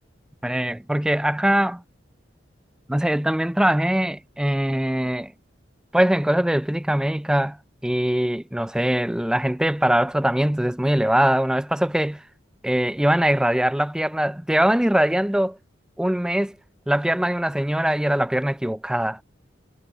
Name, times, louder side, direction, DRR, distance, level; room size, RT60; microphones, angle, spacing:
voice 1, 0.4-1.8 2.9-5.3 5.9-7.6 7.8-12.2 12.6-15.6 16.0-16.5 16.9-19.2, right 1 dB, 5° right, 0.3 m, -22 dB
head